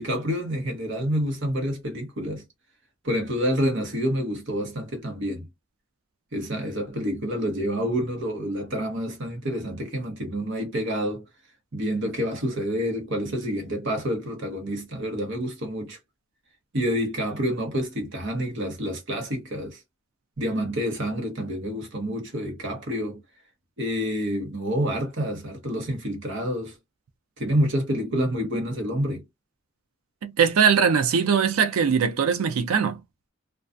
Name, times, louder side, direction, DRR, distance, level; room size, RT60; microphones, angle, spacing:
voice 1, 0.0-2.4 3.0-5.5 6.3-11.3 11.7-16.0 16.7-19.8 20.4-23.2 23.8-26.7 27.4-29.2, equal, 60° right, 0.9 m, -28 dB
voice 2, 30.2-33.0, right 6 dB, 85° right, 0.4 m, -21 dB
2.3 x 2.2 x 2.5 m
head